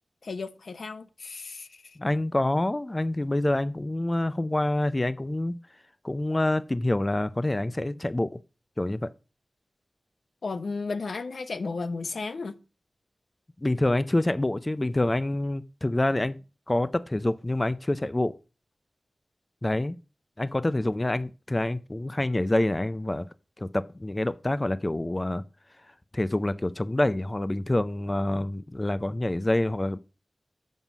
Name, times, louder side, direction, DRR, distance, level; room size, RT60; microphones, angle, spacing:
voice 1, 0.2-2.0 10.4-12.6, left 4 dB, 80° left, 0.7 m, -34 dB
voice 2, 2.0-5.5 6.0-8.4 8.8-9.1 13.6-16.4 16.7-18.4 19.6-20.0 20.4-23.3 23.6-25.4 26.1-30.0, left 1 dB, 20° left, 0.4 m, -26 dB
7.2 x 5.4 x 5.9 m
wide cardioid pair, 85°, 0 cm